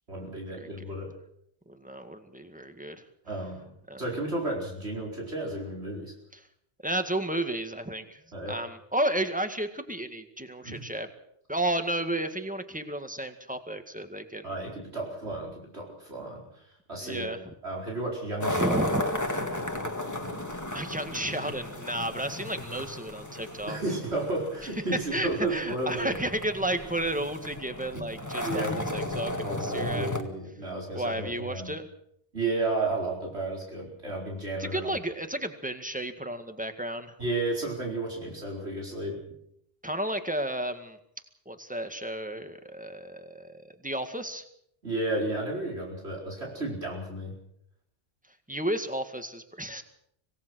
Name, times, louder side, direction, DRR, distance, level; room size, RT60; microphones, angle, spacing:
voice 1, 0.1-1.1 3.3-6.1 8.3-8.6 10.6-10.9 14.4-16.6 16.9-18.8 23.7-26.1 27.9-28.1 28.4-28.8 29.4-31.7 32.3-35.0 37.2-39.2 44.8-47.3, right 2 dB, 75° right, -2 dB, 5.1 m, -33 dB
voice 2, 1.7-3.0 3.9-4.0 6.8-11.1 11.5-14.5 17.0-17.5 18.5-19.0 20.7-23.8 25.1-28.6 28.9-30.2 30.9-31.9 34.6-37.2 39.8-41.0 41.5-44.4 48.5-49.8, right 1 dB, 5° right, 7 dB, 1.9 m, -32 dB
sound 1, 18.4-30.2, left 1 dB, 15° left, 1.9 m, -34 dB
26.0 x 18.5 x 6.3 m, 0.73 s
omnidirectional pair, 1.1 m